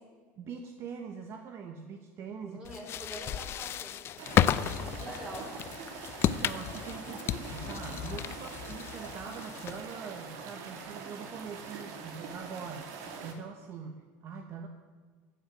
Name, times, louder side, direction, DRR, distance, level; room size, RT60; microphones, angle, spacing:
voice 1, 0.4-2.6 6.2-12.9 13.2-14.7, right 6 dB, 45° right, 5 dB, 1.1 m, -43 dB
voice 2, 2.4-5.4, right 1 dB, 10° right, -2 dB, 4.8 m, -45 dB
sound 1, 2.6-10.0, left 10 dB, 40° left, 0.5 m, -33 dB
sound 2, 4.2-13.3, right 5 dB, 65° right, 2.3 m, -44 dB
15.0 x 7.0 x 9.3 m, 1.5 s
supercardioid pair, 125°, 6 cm